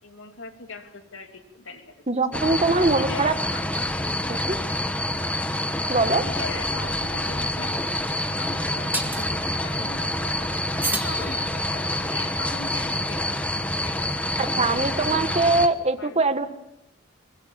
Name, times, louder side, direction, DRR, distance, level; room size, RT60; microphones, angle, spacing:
voice 1, 0.0-1.8 2.1-2.2 2.6-3.9 6.0-7.7 8.4-13.3 13.6-14.0 14.4-16.4, left 3 dB, 90° left, 5 dB, 2.9 m, -40 dB
voice 2, 2.1-3.3 4.3-4.6 5.9-6.2 14.4-16.5, right 3 dB, 35° right, 9 dB, 1.5 m, -22 dB
sound 1, 2.3-15.7, left 1 dB, 5° left, 1.2 m, -27 dB
sound 2, 8.9-9.3 10.8-11.9, right 2 dB, 10° right, 2.1 m, -31 dB
24.0 x 22.0 x 7.1 m, 0.86 s
head